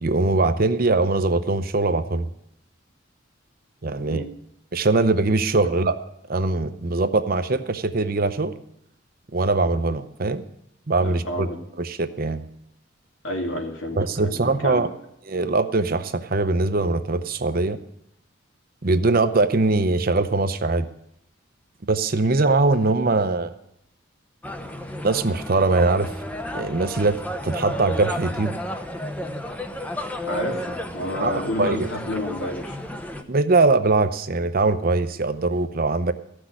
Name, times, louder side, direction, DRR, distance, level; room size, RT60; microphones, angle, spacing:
voice 1, 0.0-2.3 3.8-4.3 4.7-6.0 6.3-8.5 9.3-10.4 10.9-11.5 11.8-12.4 14.0-14.9 15.3-17.8 18.8-20.9 21.9-23.5 25.0-26.1 26.5-28.6 31.2-31.9 33.3-36.1, right 3 dB, 45° right, 10 dB, 0.7 m, -22 dB
voice 2, 3.9-4.3 5.6-5.7 11.0-11.6 13.2-14.4 14.6-14.8 30.3-32.8, left 1 dB, 80° left, 1 dB, 2.6 m, -30 dB
sound 1, 24.4-33.2, equal, 5° left, 0.7 m, -32 dB
14.5 x 6.2 x 9.8 m, 0.77 s
head